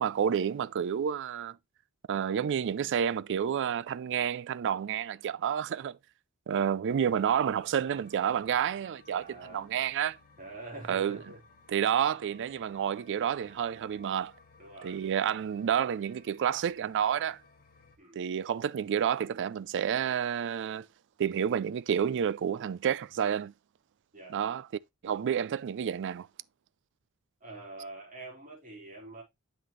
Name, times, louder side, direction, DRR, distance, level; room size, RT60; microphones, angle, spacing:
voice 1, 0.0-1.6 2.1-6.0 6.5-9.2 9.5-10.2 10.9-11.2 11.7-14.3 14.8-17.4 18.2-20.9 21.2-23.5 24.3-24.7 25.0-26.3, right 8 dB, 55° right, 0.4 m, -29 dB
sound 1, 6.9-18.0, left 3 dB, 40° left, 1.2 m, -59 dB
voice 2, 9.1-9.7 10.4-11.4 14.6-15.0 18.0-18.2 24.1-24.4 27.4-29.2, right 2 dB, 40° right, 4.4 m, -45 dB
7.8 x 5.8 x 3.2 m
head